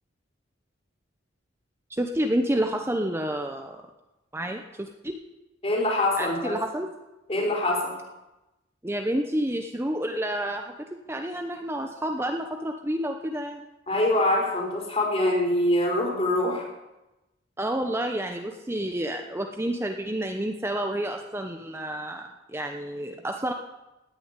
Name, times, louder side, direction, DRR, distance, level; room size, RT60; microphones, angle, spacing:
voice 1, 1.9-3.8 4.3-5.2 6.2-6.9 8.8-10.8 11.1-13.7 17.6-22.2 22.5-23.5, right 1 dB, 15° right, 4 dB, 0.9 m, -29 dB
voice 2, 5.6-6.5 7.3-7.9 13.9-16.6, left 1 dB, 35° left, -3 dB, 4.7 m, -24 dB
17.5 x 7.0 x 9.8 m, 1.0 s
head